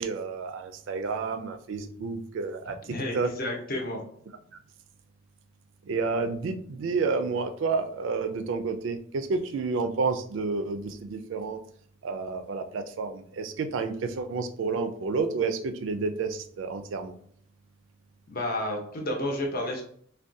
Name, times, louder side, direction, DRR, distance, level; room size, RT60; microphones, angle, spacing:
voice 1, 0.0-2.7 3.1-3.3 5.9-11.6 12.0-17.1, right 4 dB, 70° right, 7 dB, 0.4 m, -30 dB
voice 2, 2.7-4.0 18.3-19.8, left 1 dB, 50° left, 1 dB, 0.7 m, -31 dB
3.5 x 2.2 x 2.6 m, 0.62 s
head